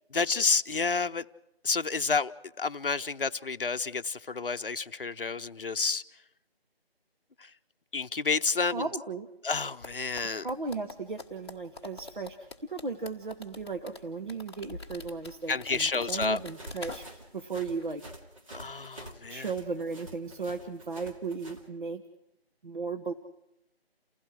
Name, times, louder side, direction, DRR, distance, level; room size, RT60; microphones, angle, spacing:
voice 1, 0.1-1.2 1.6-2.3 2.6-6.0 7.9-8.8 9.4-10.5 15.5-16.4 18.5-19.5, left 4 dB, 60° left, 10 dB, 0.8 m, -29 dB
voice 2, 8.7-9.3 10.4-17.1 17.3-18.0 19.3-22.0 22.6-23.1, right 4 dB, 50° right, 6 dB, 1.3 m, -36 dB
sound 1, 9.8-17.4 17.7-17.8, left 3 dB, 25° left, 1.5 m, -45 dB
sound 2, 15.9-21.6, right 1 dB, 35° right, 2.4 m, -47 dB
29.5 x 16.5 x 6.3 m, 0.86 s
figure-of-eight pair, 175°, 31 cm